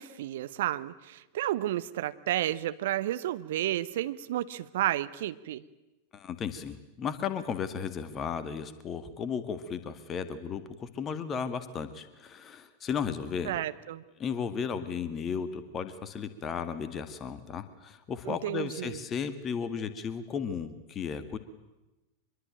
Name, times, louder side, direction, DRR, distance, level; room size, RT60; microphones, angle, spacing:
voice 1, 0.0-5.6 13.4-14.0 18.3-19.0, right 13 dB, 55° right, 13 dB, 1.0 m, -32 dB
voice 2, 6.1-13.6 14.2-21.4, left 6 dB, 25° left, 11 dB, 2.0 m, -35 dB
25.0 x 22.5 x 9.0 m, 1.0 s
figure-of-eight pair, 90°, 0 cm